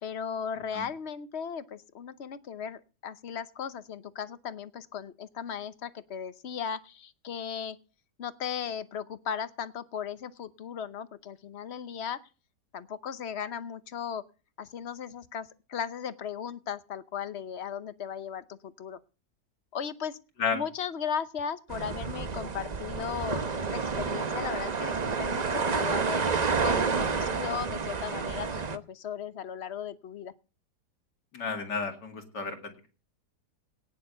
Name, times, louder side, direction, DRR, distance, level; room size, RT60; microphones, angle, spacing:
voice 1, 0.0-7.8 8.2-12.2 12.7-14.2 14.6-19.0 19.7-20.2 20.5-26.3 26.6-30.3, left 7 dB, 50° left, 14 dB, 0.9 m, -37 dB
sound 1, 21.7-28.8, right 5 dB, 40° right, 0.6 m, -30 dB
voice 2, 31.3-32.9, left 5 dB, 80° left, 4 dB, 2.9 m, -32 dB
18.0 x 6.7 x 6.8 m, 0.35 s
omnidirectional pair, 1.8 m